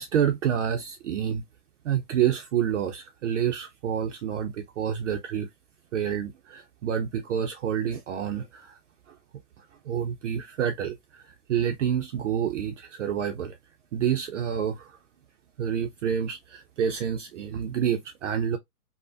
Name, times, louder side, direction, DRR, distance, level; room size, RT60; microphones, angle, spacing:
voice 1, 0.0-1.4 1.8-5.5 5.9-8.8 9.1-9.2 9.6-13.6 13.9-15.0 15.6-18.6, right 8 dB, 50° right, 0.5 m, -28 dB
3.1 x 2.1 x 2.5 m
hypercardioid pair, 135°, 50 cm